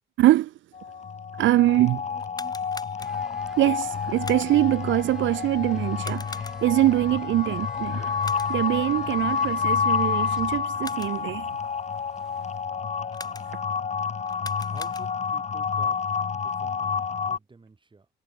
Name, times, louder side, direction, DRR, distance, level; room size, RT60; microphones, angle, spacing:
voice 1, 0.2-0.5 1.4-2.0 3.6-8.1 8.5-11.5, right 15 dB, 75° right, 0.6 m, -23 dB
sound 1, 0.7-17.4, left 6 dB, 35° left, 1.0 m, -29 dB
sound 2, 2.1-3.5 4.2-4.8 6.0-6.9 8.2-8.8 10.6-11.4 13.1-13.8 14.3-15.4, left 3 dB, 20° left, 3.0 m, -43 dB
voice 2, 2.1-2.6 7.4-7.8 9.4-9.6 14.7-16.1 16.4-18.1, right 3 dB, 25° right, 2.8 m, -51 dB
sound 3, 3.0-10.9 11.1-12.7, equal, 5° right, 2.0 m, -50 dB
cardioid pair, 90°, 20 cm